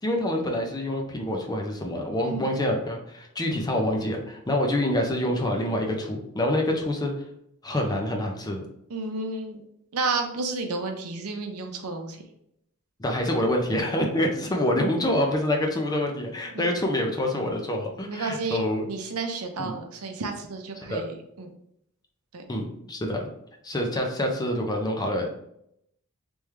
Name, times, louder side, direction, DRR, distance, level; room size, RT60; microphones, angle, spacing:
voice 1, 0.0-7.1 7.6-8.6 13.0-18.8 19.6-19.7 20.9-21.0 22.5-23.2 23.6-25.3, left 1 dB, 20° left, 2 dB, 0.6 m, -26 dB
voice 2, 8.9-9.6 9.9-12.2 16.5-16.6 18.1-21.5 22.3-22.4, right 3 dB, 75° right, 4 dB, 0.6 m, -31 dB
3.5 x 3.2 x 3.2 m, 0.76 s
head